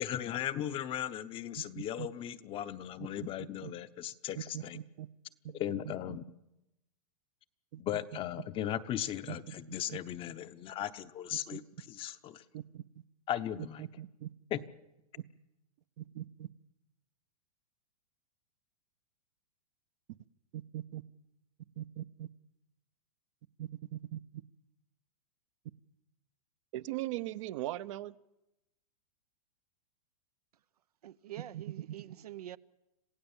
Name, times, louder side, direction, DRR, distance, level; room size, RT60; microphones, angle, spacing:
voice 1, 0.0-4.8 5.5-6.2 7.8-11.6 11.9-12.4 13.3-13.9 14.5-14.6, left 11 dB, 25° left, 0.9 m, -37 dB
voice 2, 1.8-2.1 3.6-3.7 4.5-5.1 5.4-5.5 7.7-7.8 9.3-10.0 11.5-11.6 12.5-12.8 13.8-14.3 16.0-16.5 20.5-21.0 21.8-22.3 23.6-24.2 26.7-28.1 31.5-31.9, right 14 dB, 55° right, 0.8 m, -40 dB
voice 3, 31.0-32.6, right 12 dB, 85° right, 0.8 m, -46 dB
27.0 x 16.0 x 7.3 m
hypercardioid pair, 130°, 19 cm